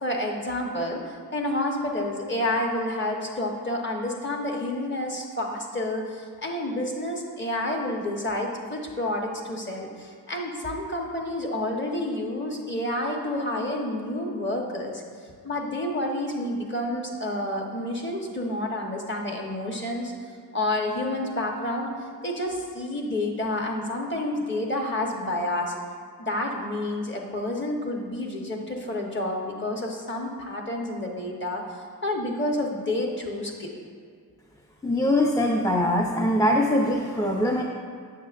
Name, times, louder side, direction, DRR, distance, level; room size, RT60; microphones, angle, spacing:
voice 1, 0.0-15.0 15.4-20.1 20.5-21.9 22.2-25.7 26.2-33.8, left 1 dB, 30° left, 0 dB, 1.0 m, -29 dB
voice 2, 34.8-37.6, left 1 dB, 10° left, 0 dB, 0.4 m, -22 dB
7.3 x 6.4 x 2.5 m, 2.1 s
cardioid pair, 70°, 38 cm